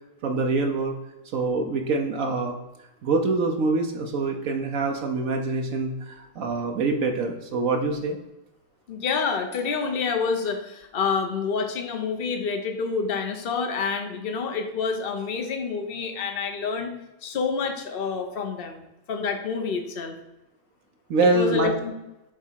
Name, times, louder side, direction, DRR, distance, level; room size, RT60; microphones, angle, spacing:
voice 1, 0.2-1.0 1.3-2.6 3.0-8.2 21.1-21.7, right 3 dB, 75° right, 3 dB, 1.2 m, -25 dB
voice 2, 8.9-16.9 17.2-18.8 19.1-20.1 21.3-21.9, left 5 dB, 45° left, 5 dB, 1.1 m, -28 dB
8.4 x 3.5 x 5.7 m, 0.95 s
omnidirectional pair, 1.4 m